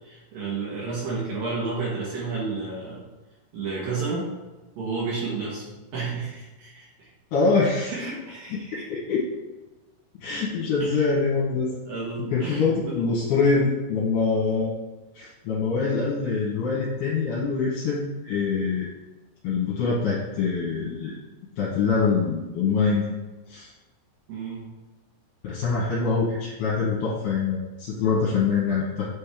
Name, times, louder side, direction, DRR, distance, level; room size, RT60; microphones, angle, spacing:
voice 1, 0.0-3.0 3.5-4.3 4.8-7.1 7.9-8.7 10.8-11.1 11.9-13.0 24.3-24.7, right 4 dB, 65° right, -5 dB, 2.6 m, -31 dB
voice 2, 7.3-7.9 8.5-8.6 8.9-9.2 10.2-11.7 12.2-14.7 15.1-18.9 19.4-21.2 21.6-23.1 23.5-23.7 25.4-29.1, left 4 dB, 75° left, -6 dB, 2.9 m, -24 dB
8.3 x 4.3 x 3.5 m, 1.2 s
omnidirectional pair, 5.0 m